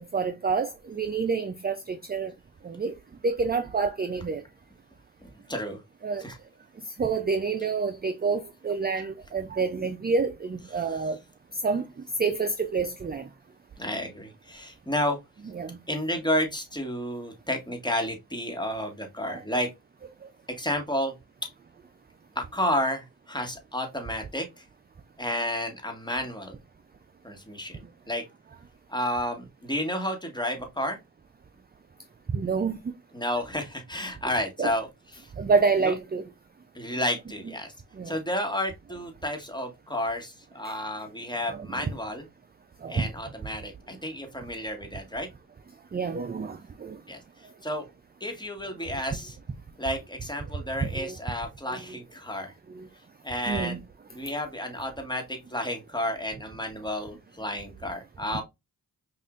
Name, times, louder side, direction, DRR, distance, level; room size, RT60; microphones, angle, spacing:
voice 1, 0.0-2.3 2.6-2.9 3.2-4.4 6.0-6.2 7.0-11.2 11.6-11.8 12.2-13.3 15.6-15.8 19.3-19.4 32.3-32.8 34.6-34.7 35.4-36.2 38.0-38.1 41.5-41.7 42.8-43.0 45.9-47.0 50.9-51.2 51.7-51.8 52.8-52.9 53.5-53.8, right 4 dB, 25° right, 0.4 m, -28 dB
voice 2, 5.2-5.8 6.2-6.4 7.6-7.7 8.9-9.1 10.6-11.0 13.8-15.2 15.9-19.7 20.6-21.1 21.4-21.5 22.4-24.7 25.2-26.5 27.2-28.2 28.9-31.0 33.1-35.3 35.8-35.9 36.7-37.7 38.0-42.3 42.9-45.3 47.1-47.2 47.6-47.9 48.2-49.4 49.8-52.5 53.2-53.9 54.1-58.4, left 1 dB, 10° left, 1.6 m, -31 dB
5.5 x 2.6 x 2.5 m
cardioid pair, 45°, 39 cm